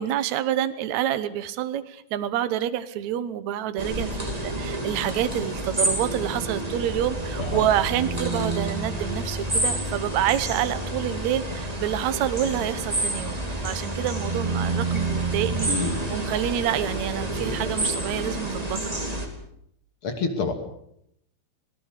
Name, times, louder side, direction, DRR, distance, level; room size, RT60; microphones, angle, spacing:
voice 1, 0.0-19.0, right 11 dB, 65° right, 12 dB, 1.8 m, -28 dB
sound 1, 3.8-19.3, right 2 dB, 10° right, 2.2 m, -29 dB
voice 2, 7.4-7.7 15.7-16.0 20.0-20.5, left 3 dB, 40° left, 5 dB, 2.8 m, -27 dB
26.5 x 18.0 x 6.7 m, 0.74 s
omnidirectional pair, 4.6 m